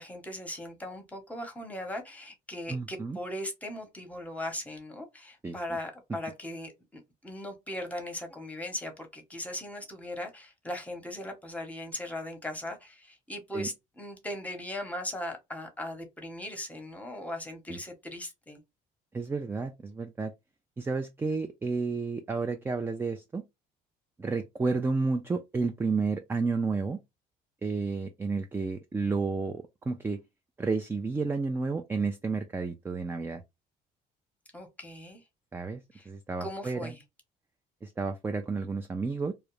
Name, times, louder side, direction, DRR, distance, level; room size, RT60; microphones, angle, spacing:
voice 1, 0.0-18.6 34.5-35.2 35.9-36.1 36.4-37.0, left 1 dB, 10° left, 0.8 m, -39 dB
voice 2, 2.7-3.2 5.4-5.6 13.5-13.7 17.7-17.8 19.1-20.3 20.8-23.4 24.2-27.0 27.6-30.2 30.6-33.4 35.5-36.9 37.8-39.3, right 4 dB, 15° right, 0.3 m, -31 dB
2.3 x 2.0 x 3.0 m
cardioid pair, 110°, 17 cm